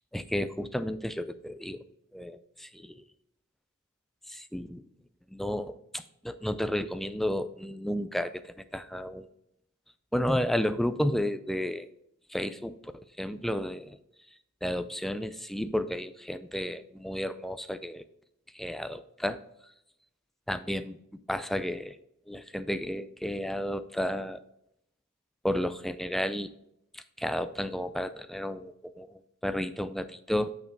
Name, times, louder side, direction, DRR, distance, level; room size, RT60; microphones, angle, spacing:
voice 1, 0.0-1.8 2.1-3.0 4.3-4.8 5.3-9.3 10.1-11.9 12.3-14.0 14.6-18.0 18.5-19.4 20.5-21.0 21.3-22.0 22.3-24.4 25.4-26.5 26.9-30.5, equal, ahead, 12 dB, 0.3 m, -32 dB
6.4 x 5.9 x 3.9 m, 0.79 s
head